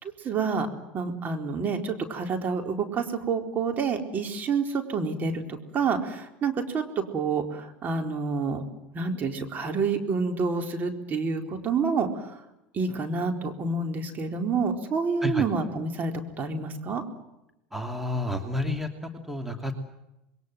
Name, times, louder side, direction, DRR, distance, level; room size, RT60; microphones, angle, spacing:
voice 1, 0.0-0.7 0.9-8.6 8.9-12.4 12.7-17.0, right 4 dB, 35° right, 4 dB, 4.2 m, -28 dB
voice 2, 17.7-18.9 19.3-19.8, left 1 dB, 5° right, 5 dB, 2.8 m, -29 dB
27.0 x 22.0 x 7.6 m, 0.90 s
hypercardioid pair, 80°, 5 cm